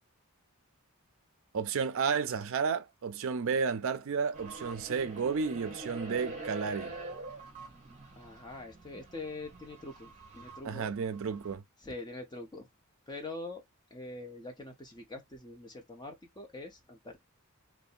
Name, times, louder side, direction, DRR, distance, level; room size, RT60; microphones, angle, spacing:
voice 1, 1.5-6.9 10.6-11.6, right 5 dB, 65° right, 0.4 m, -32 dB
sound 1, 4.3-11.6, right 2 dB, 35° right, 0.9 m, -45 dB
voice 2, 8.2-10.9 11.8-12.7 13.1-13.6 13.9-17.2, left 2 dB, 20° left, 0.8 m, -44 dB
2.7 x 2.2 x 2.4 m
head